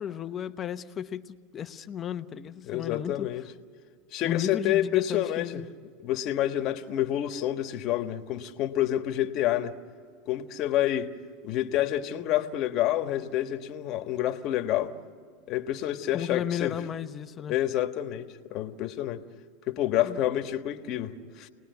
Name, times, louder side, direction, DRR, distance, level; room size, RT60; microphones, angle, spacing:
voice 1, 0.0-3.3 4.2-5.7 16.1-17.5 20.0-20.2, left 9 dB, 30° left, 1.0 m, -34 dB
voice 2, 2.7-3.4 4.1-5.6 6.0-9.8 10.3-11.1 11.4-14.9 15.5-16.8 17.5-19.2 19.7-21.5, left 12 dB, 50° left, 1.6 m, -28 dB
30.0 x 20.0 x 9.5 m
supercardioid pair, 120°, 0 cm